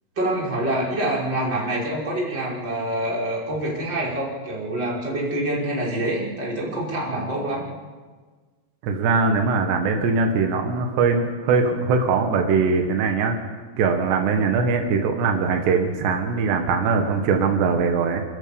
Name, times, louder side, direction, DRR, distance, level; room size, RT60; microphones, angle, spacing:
voice 1, 0.2-7.7, right 1 dB, 25° right, -5 dB, 6.1 m, -26 dB
voice 2, 8.8-13.4 13.8-18.2, right 4 dB, 90° right, 4 dB, 3.8 m, -21 dB
29.5 x 13.5 x 7.0 m, 1.4 s
omnidirectional pair, 4.8 m